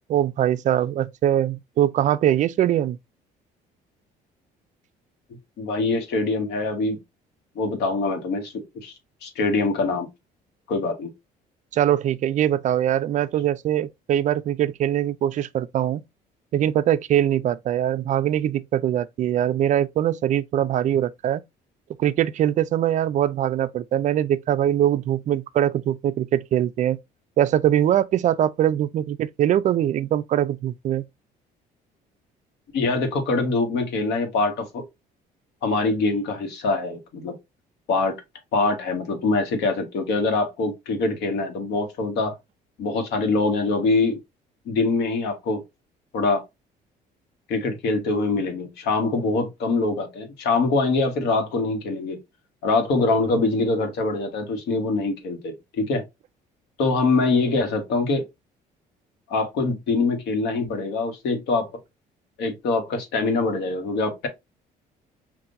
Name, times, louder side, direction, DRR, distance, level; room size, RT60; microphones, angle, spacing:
voice 1, 0.1-3.0 11.7-16.0 16.5-21.4 22.0-27.0 27.4-31.0, right 11 dB, 45° right, 0.4 m, -22 dB
voice 2, 5.6-7.0 7.5-8.9 9.2-10.1 10.7-11.1 32.7-34.9 35.6-37.3 37.9-38.2 38.5-42.3 42.8-44.2 44.6-45.6 46.1-46.4 47.5-52.2 52.6-56.0 56.8-58.2 59.3-61.7 62.4-64.3, left 3 dB, 80° left, 1.3 m, -24 dB
5.4 x 2.5 x 2.6 m
cardioid pair, 110°, 17 cm